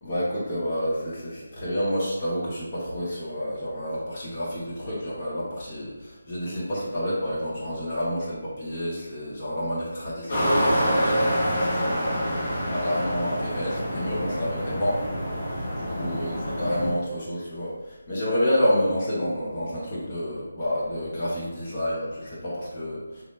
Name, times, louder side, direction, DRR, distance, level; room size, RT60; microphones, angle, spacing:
voice 1, 0.0-12.2 12.7-15.0 15.8-23.2, equal, 30° left, -7 dB, 1.2 m, -29 dB
sound 1, 10.3-16.9, equal, 55° left, 1.3 m, -26 dB
3.3 x 2.9 x 2.5 m, 1.1 s
figure-of-eight pair, 160°, 0 cm